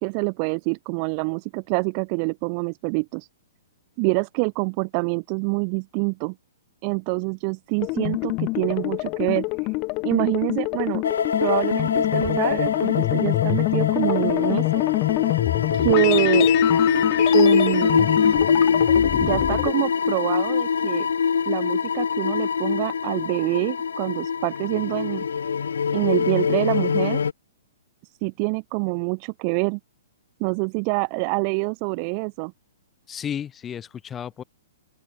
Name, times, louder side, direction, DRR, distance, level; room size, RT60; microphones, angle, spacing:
voice 1, 0.0-3.3 4.0-6.3 6.8-9.7 10.0-11.0 11.4-14.8 15.7-16.5 17.3-18.1 19.2-21.1 21.5-25.2 25.9-27.2 28.2-29.8 30.4-32.5, right 40 dB or more, 40° right, 0.7 m, -26 dB
sound 1, 7.8-19.7, left 26 dB, 35° left, 1.2 m, -25 dB
sound 2, 11.0-27.3, left 6 dB, 85° left, 0.5 m, -23 dB
voice 2, 33.1-34.4, left 8 dB, 15° left, 3.1 m, -33 dB
open air
hypercardioid pair, 140°, 0 cm